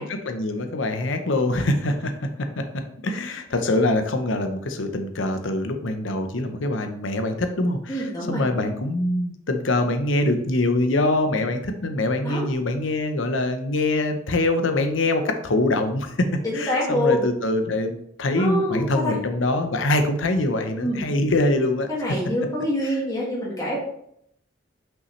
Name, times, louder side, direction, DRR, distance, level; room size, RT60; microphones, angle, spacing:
voice 1, 0.0-2.1 2.6-2.7 3.0-16.3 16.5-21.9, left 2 dB, 75° left, 7 dB, 0.8 m, -24 dB
voice 2, 7.9-8.4 12.2-12.4 16.4-17.2 18.3-19.2 20.8-21.0 21.9-23.8, left 1 dB, 20° left, -5 dB, 2.0 m, -25 dB
5.7 x 5.5 x 3.2 m, 0.71 s
head